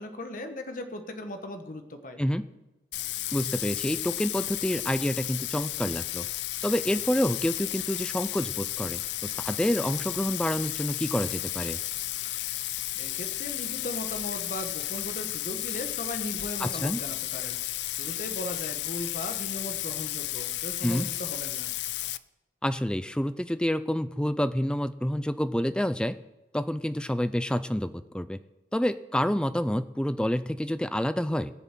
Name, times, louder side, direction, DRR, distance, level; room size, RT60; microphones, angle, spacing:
voice 1, 0.0-2.2 13.0-21.7, left 1 dB, 50° left, 6 dB, 1.3 m, -38 dB
Bathtub (filling or washing), 2.9-22.2, left 15 dB, 85° left, 0.5 m, -33 dB
voice 2, 3.3-6.3 6.6-11.8 16.6-17.0 20.8-21.1 22.6-26.2 26.5-28.4 28.7-31.5, equal, 5° left, 13 dB, 0.4 m, -28 dB
18.5 x 7.1 x 7.6 m, 1.0 s
head